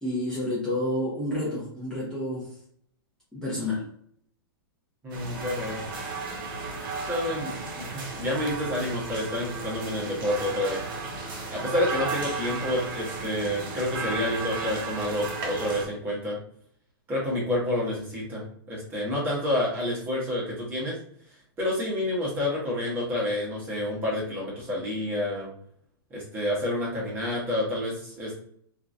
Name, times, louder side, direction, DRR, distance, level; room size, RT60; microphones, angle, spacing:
voice 1, 0.0-2.5 3.3-3.8, left 1 dB, 5° left, -9 dB, 0.8 m, -29 dB
voice 2, 5.0-5.8 7.1-10.8 11.5-16.4 17.1-21.0 21.6-25.5 26.1-28.4, left 1 dB, 15° right, -4 dB, 1.1 m, -29 dB
sound 1, 5.1-15.9, right 3 dB, 55° right, 1.0 m, -34 dB
2.9 x 2.5 x 2.5 m, 0.64 s
hypercardioid pair, 150°, 12 cm